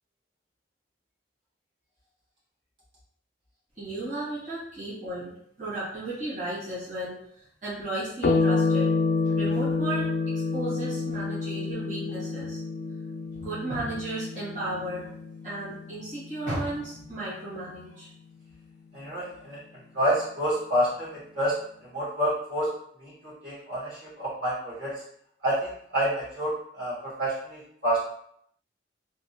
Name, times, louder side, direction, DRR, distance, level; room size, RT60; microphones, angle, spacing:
voice 1, 3.7-5.3 5.6-8.9 9.2-12.6 13.4-15.1 15.4-18.1, right 1 dB, 40° right, -11 dB, 1.3 m, -34 dB
sound 1, 8.2-17.1, left 3 dB, 50° left, 0.3 m, -28 dB
voice 2, 18.9-19.6 19.9-21.6 21.9-22.7 23.0-24.9 25.4-28.0, equal, 60° right, -10 dB, 1.2 m, -28 dB
2.7 x 2.0 x 2.6 m, 0.70 s
head